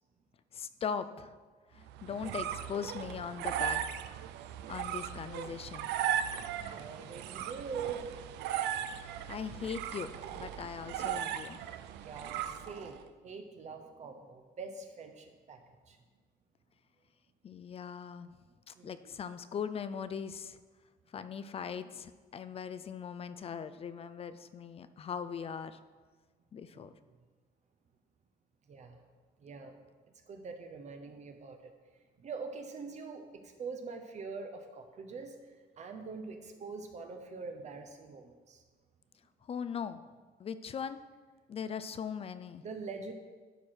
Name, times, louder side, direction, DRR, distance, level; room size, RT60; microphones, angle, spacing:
voice 1, 0.5-1.3 1.7-3.8 4.7-5.9 9.3-10.1 10.4-11.6 17.4-18.3 18.7-20.6 21.1-25.8 26.5-26.9 39.5-40.0 40.4-41.0 41.5-42.6, left 7 dB, 35° left, 12 dB, 0.4 m, -40 dB
sound 1, 1.9-13.0, right 10 dB, 85° right, 0.5 m, -37 dB
voice 2, 6.7-8.1 12.0-16.0 18.7-19.1 26.7-26.9 28.7-29.0 29.4-29.8 30.3-31.7 32.2-38.6 42.6-43.1, right 5 dB, 45° right, 5 dB, 0.8 m, -44 dB
12.0 x 4.8 x 4.4 m, 1.4 s
cardioid pair, 110°, 17 cm